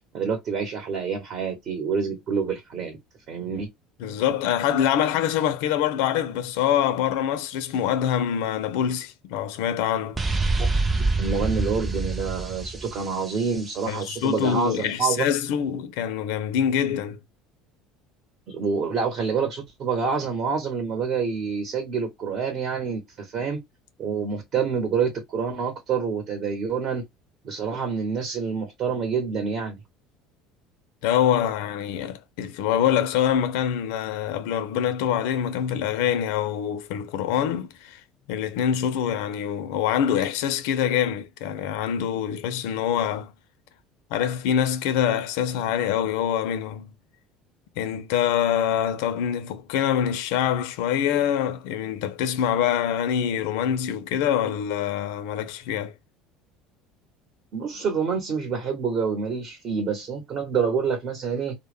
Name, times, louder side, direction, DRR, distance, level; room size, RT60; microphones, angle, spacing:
voice 1, 0.1-3.0 3.3-3.7 11.0-15.3 18.5-23.6 24.0-27.0 27.4-29.8 57.5-61.5, right 5 dB, 45° right, 0.9 m, -27 dB
voice 2, 4.0-10.2 13.9-17.2 31.0-38.0 38.3-43.3 44.1-46.9 47.8-55.9, left 9 dB, 80° left, 0.4 m, -25 dB
sound 1, 10.2-13.9, right 3 dB, 15° right, 0.4 m, -26 dB
2.1 x 2.0 x 3.2 m
cardioid pair, 125°, 0 cm